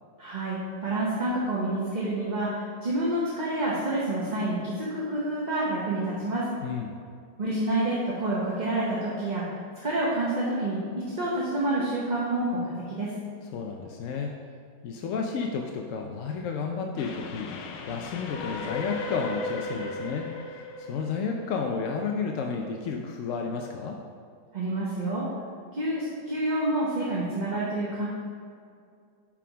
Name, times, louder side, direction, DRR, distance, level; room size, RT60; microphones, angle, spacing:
voice 1, 0.2-6.4 7.4-10.8 11.1-13.1 24.5-25.3 25.7-28.1, right 1 dB, 35° right, -6 dB, 0.9 m, -28 dB
voice 2, 6.6-6.9 13.4-14.4 14.8-24.0, left 5 dB, 65° left, 2 dB, 0.8 m, -32 dB
Train, 17.0-22.2, left 3 dB, 90° left, 1.2 m, -36 dB
5.9 x 4.9 x 5.0 m, 2.2 s
omnidirectional pair, 1.6 m